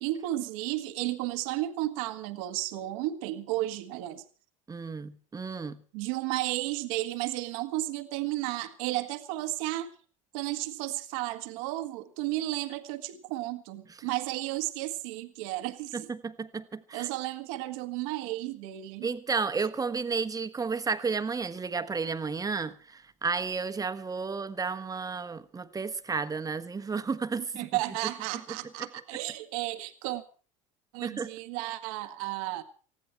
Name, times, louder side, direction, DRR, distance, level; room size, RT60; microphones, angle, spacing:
voice 1, 0.0-4.2 5.9-9.9 10.3-16.1 16.9-19.1 27.5-30.2 30.9-32.6, right 16 dB, 75° right, 1.5 m, -33 dB
voice 2, 4.7-5.8 13.9-14.1 15.9-17.1 19.0-27.7 31.0-31.3, right 5 dB, 20° right, 1.3 m, -32 dB
20.0 x 14.5 x 4.5 m
hypercardioid pair, 90°, 18 cm